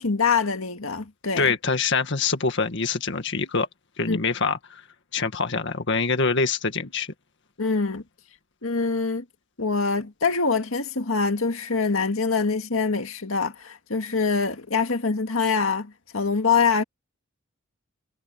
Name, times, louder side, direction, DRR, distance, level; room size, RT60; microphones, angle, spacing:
voice 1, 0.0-1.5 4.1-4.2 7.6-8.0 8.6-9.2 9.6-16.8, left 4 dB, 80° left, 1.9 m, -24 dB
voice 2, 1.4-3.7 4.0-4.8 5.1-7.1, left 4 dB, 60° left, 1.8 m, -25 dB
head